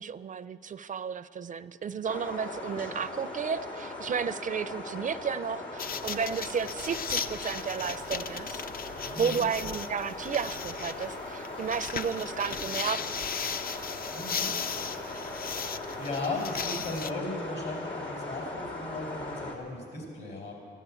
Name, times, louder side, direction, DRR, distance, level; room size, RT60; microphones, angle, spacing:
voice 1, 0.0-8.6 9.2-13.2, right 6 dB, 45° right, 14 dB, 0.4 m, -33 dB
sound 1, 2.0-19.5, left 2 dB, 90° left, 2.0 m, -39 dB
sound 2, 5.8-17.1, left 6 dB, 50° left, 0.5 m, -37 dB
voice 2, 9.0-9.4 14.1-14.5 16.0-20.5, left 2 dB, 70° left, 1 dB, 4.4 m, -36 dB
13.5 x 11.0 x 8.4 m, 2.4 s
cardioid pair, 85°, 19 cm